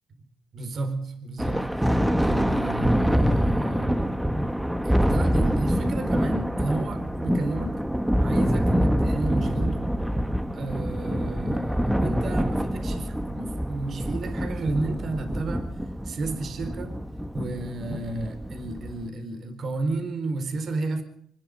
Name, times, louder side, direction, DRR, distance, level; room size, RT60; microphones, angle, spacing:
voice 1, 0.5-4.1 4.8-7.8 8.2-9.9 10.5-17.0 17.3-21.0, right 2 dB, 55° right, 4.2 m, -32 dB
Thunder, 1.4-19.1, equal, 5° right, 1.4 m, -25 dB
26.0 x 20.0 x 5.2 m
cardioid pair, 90°, 0 cm